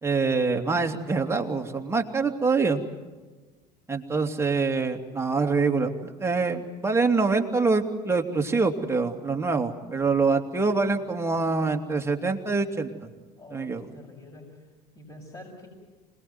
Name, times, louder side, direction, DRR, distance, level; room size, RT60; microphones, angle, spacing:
voice 1, 0.0-2.8 3.9-13.1 13.5-13.9, right 4 dB, 10° right, 3 dB, 2.8 m, -25 dB
voice 2, 13.4-14.7 14.9-15.7, left 1 dB, 20° left, -2 dB, 6.6 m, -46 dB
27.0 x 20.0 x 9.5 m, 1.3 s
figure-of-eight pair, 70°, 21 cm